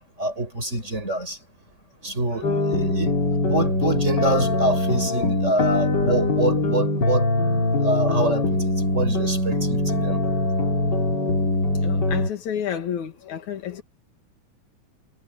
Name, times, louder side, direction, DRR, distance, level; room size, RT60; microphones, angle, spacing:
voice 1, 0.2-1.4 2.0-3.1 3.4-7.3 7.8-10.2, right 1 dB, 20° right, 6.8 m, -26 dB
sound 1, 2.4-12.3, left 2 dB, 35° left, 3.1 m, -22 dB
voice 2, 11.8-13.8, left 9 dB, 65° left, 3.2 m, -30 dB
omnidirectional pair, 3.8 m